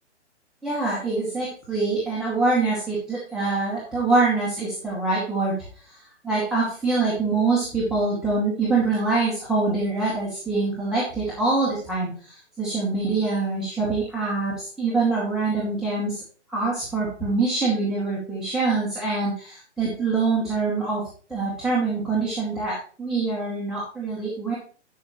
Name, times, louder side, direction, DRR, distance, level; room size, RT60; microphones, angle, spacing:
voice 1, 0.6-5.6 5.8-16.2 16.5-21.0 21.3-24.5, right 3 dB, ahead, -8 dB, 2.3 m, -25 dB
11.5 x 6.2 x 3.1 m, 0.41 s
hypercardioid pair, 140°, 35 cm